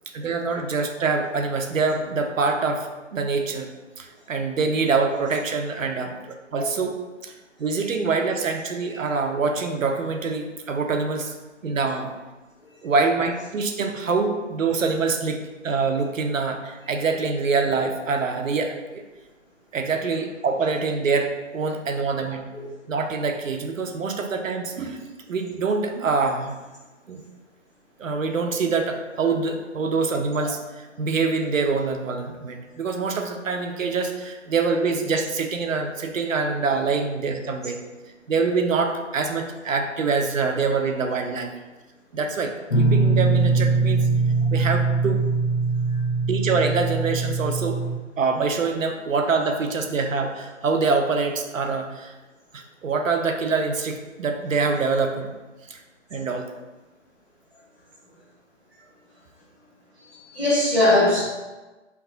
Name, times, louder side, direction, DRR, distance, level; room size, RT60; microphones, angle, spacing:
voice 1, 0.1-3.7 4.0-6.1 6.5-6.9 7.2-7.3 7.6-11.3 11.6-12.1 12.8-19.0 19.7-22.5 22.9-26.6 27.1-27.2 28.0-37.8 38.3-41.5 42.1-44.0 44.5-45.2 46.3-47.8 48.2-52.1 52.5-55.3 55.7-55.8 56.1-56.5, right 4 dB, 85° right, 5 dB, 0.6 m, -25 dB
Guitar, 42.7-48.0, right 3 dB, 60° left, 0.6 m, -22 dB
voice 2, 60.1-61.2, left 1 dB, ahead, -19 dB, 0.4 m, -20 dB
2.9 x 2.2 x 3.7 m, 1.2 s
figure-of-eight pair, 150°, 38 cm